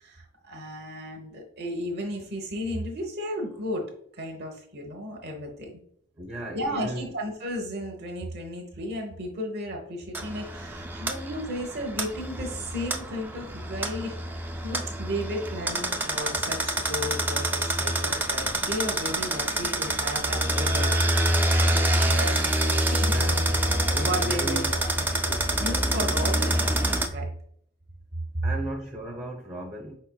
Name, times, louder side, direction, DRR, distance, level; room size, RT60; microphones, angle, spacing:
voice 1, 0.0-3.8 4.2-5.7 6.5-20.9 21.7-22.4 22.8-23.5 24.0-27.3 28.4-28.5, equal, 55° right, 1 dB, 1.0 m, -34 dB
voice 2, 6.2-7.1 20.8-21.0 21.3-22.0 23.1-23.5 23.9-24.7 28.4-29.9, right 1 dB, 25° right, -1 dB, 0.7 m, -36 dB
sound 1, 10.1-27.1, right 1 dB, 10° right, 0.3 m, -26 dB
5.0 x 4.3 x 2.2 m, 0.63 s
head